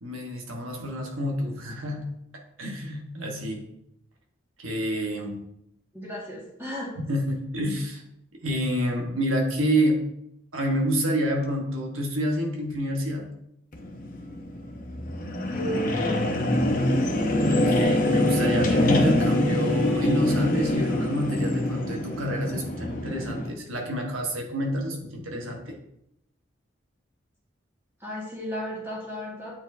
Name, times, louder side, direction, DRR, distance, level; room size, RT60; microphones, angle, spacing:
voice 1, 0.0-2.1 2.6-3.6 4.6-5.4 7.1-8.0 8.4-10.0 10.5-13.3 17.5-25.8, equal, 90° right, 1 dB, 1.3 m, -28 dB
voice 2, 5.9-6.9 15.5-16.5 28.0-29.6, equal, 10° right, -5 dB, 1.8 m, -34 dB
sound 1, 13.7-23.5, left 1 dB, 40° left, 0.8 m, -25 dB
8.6 x 4.3 x 2.7 m, 0.79 s
head